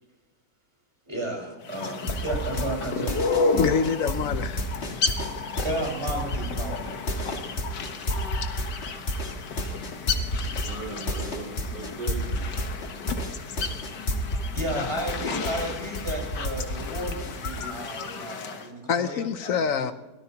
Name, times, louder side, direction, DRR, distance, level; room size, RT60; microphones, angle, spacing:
voice 1, 1.1-3.2 5.6-6.9 14.5-19.9, right 1 dB, 15° right, -1 dB, 5.0 m, -33 dB
sound 1, 1.6-18.7, left 4 dB, 90° left, 1.8 m, -33 dB
sound 2, 1.8-14.7 15.0-17.6, left 1 dB, 40° left, 2.1 m, -30 dB
voice 2, 3.6-4.7 14.7-15.0 18.9-19.9, left 6 dB, 65° left, 11 dB, 0.9 m, -26 dB
voice 3, 10.4-12.7, right 3 dB, 85° right, -7 dB, 5.0 m, -38 dB
23.0 x 17.5 x 2.9 m, 1.1 s
omnidirectional pair, 1.8 m